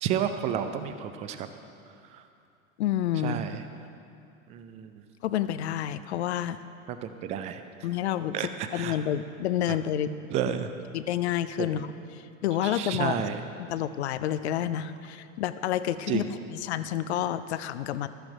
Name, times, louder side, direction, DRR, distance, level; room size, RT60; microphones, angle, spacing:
voice 1, 0.0-1.5 3.2-3.6 4.5-4.9 6.9-7.6 8.3-9.0 10.3-10.7 11.6-11.7 12.7-13.4 16.1-16.2, right 9 dB, 20° right, 9 dB, 0.4 m, -31 dB
voice 2, 2.8-3.5 5.2-6.6 7.8-10.1 10.9-13.3 13.6-18.1, left 11 dB, 55° left, 13 dB, 0.5 m, -29 dB
13.0 x 8.0 x 4.8 m, 2.6 s
figure-of-eight pair, 85°, 41 cm